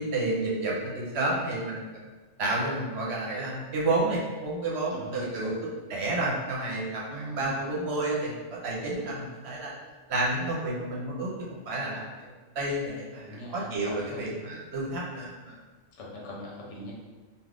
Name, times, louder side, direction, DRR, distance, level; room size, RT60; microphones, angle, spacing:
voice 1, 0.0-1.9 2.4-5.5 5.9-9.7 10.1-12.3 12.5-15.6, right 2 dB, 65° right, -4 dB, 0.9 m, -30 dB
voice 2, 4.9-5.5 7.1-7.5 13.2-14.5 15.9-16.9, equal, 80° left, -4 dB, 1.0 m, -41 dB
2.4 x 2.4 x 3.3 m, 1.3 s
omnidirectional pair, 1.2 m